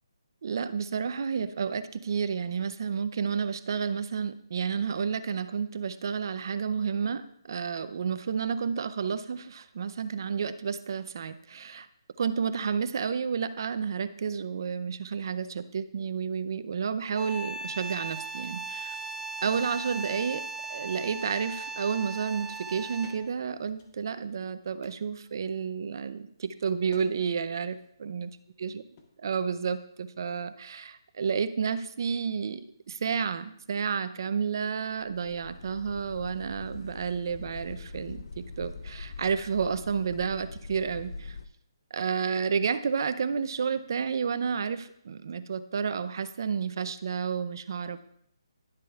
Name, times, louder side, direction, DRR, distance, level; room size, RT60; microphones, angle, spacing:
voice 1, 0.4-11.9 12.2-19.0 19.4-20.4 20.7-28.3 28.6-28.8 29.2-41.4 41.9-48.0, right 6 dB, 55° right, 12 dB, 0.5 m, -31 dB
sound 1, 17.1-23.3, right 4 dB, 5° right, 0.4 m, -38 dB
sound 2, 23.0-23.2 23.7-24.4 24.8-25.2 26.9-27.2 27.4-27.9 29.0-29.1, left 5 dB, 30° left, 0.9 m, -52 dB
sound 3, 34.9-41.5, left 3 dB, 65° left, 0.5 m, -43 dB
11.0 x 7.5 x 2.4 m, 0.71 s
hypercardioid pair, 155°, 3 cm